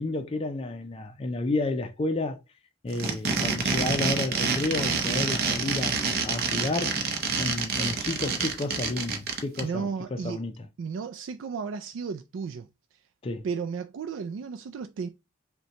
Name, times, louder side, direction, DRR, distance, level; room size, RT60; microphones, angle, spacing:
voice 1, 0.0-2.4 2.8-7.0 7.4-10.7 13.2-13.5, left 2 dB, 30° left, 0.4 m, -31 dB
sound 1, 2.9-9.6, right 4 dB, 50° right, 0.7 m, -27 dB
voice 2, 9.6-10.4 10.8-12.7 13.4-15.1, right 5 dB, 75° right, 0.3 m, -33 dB
5.3 x 2.2 x 2.9 m
head